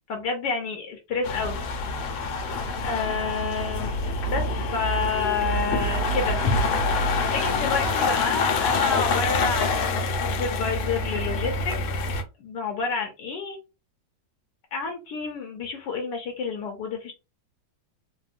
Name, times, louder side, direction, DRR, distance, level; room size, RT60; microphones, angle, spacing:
voice 1, 0.1-1.6 2.8-3.9 4.3-4.4 4.7-6.4 7.0-11.7 12.4-13.6 14.7-17.1, left 5 dB, 70° left, 3 dB, 1.2 m, -29 dB
sound 1, 1.2-12.2, left 3 dB, 85° left, 1.5 m, -26 dB
3.5 x 2.2 x 2.4 m, 0.28 s
omnidirectional pair, 2.1 m